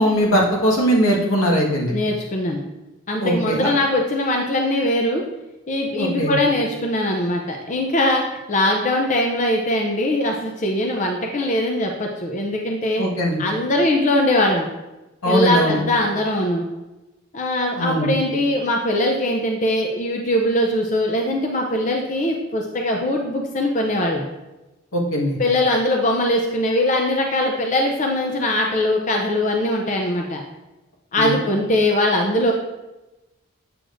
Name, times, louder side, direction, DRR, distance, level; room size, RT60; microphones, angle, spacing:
voice 1, 0.0-1.9 3.2-3.7 6.0-6.3 13.0-13.4 15.2-15.8 17.8-18.1 24.9-25.4 31.2-31.4, equal, 80° left, -2 dB, 1.5 m, -20 dB
voice 2, 1.9-2.6 3.1-5.2 5.7-13.0 13.4-14.7 15.3-16.7 17.3-24.2 25.4-30.4 31.1-32.5, left 1 dB, 35° left, 1 dB, 0.5 m, -21 dB
7.6 x 6.7 x 2.6 m, 1.0 s
head